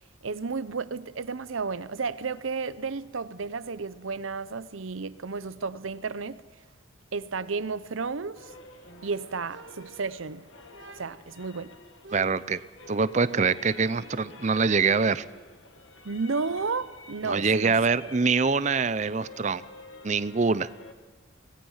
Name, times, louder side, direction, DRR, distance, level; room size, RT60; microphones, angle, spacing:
voice 1, 0.2-6.4 7.1-8.5 9.0-10.5 11.0-11.8 16.0-17.8, right 4 dB, 85° right, 0.7 m, -32 dB
sound 1, 8.3-20.9, left 2 dB, 75° left, 1.6 m, -49 dB
sound 2, 9.5-10.3 10.7-11.4 12.0-13.8, right 1 dB, 60° right, 1.3 m, -47 dB
voice 2, 12.1-12.6 12.9-15.2 17.2-19.6 20.0-20.7, right 4 dB, 35° right, 0.5 m, -24 dB
25.5 x 18.5 x 5.7 m
head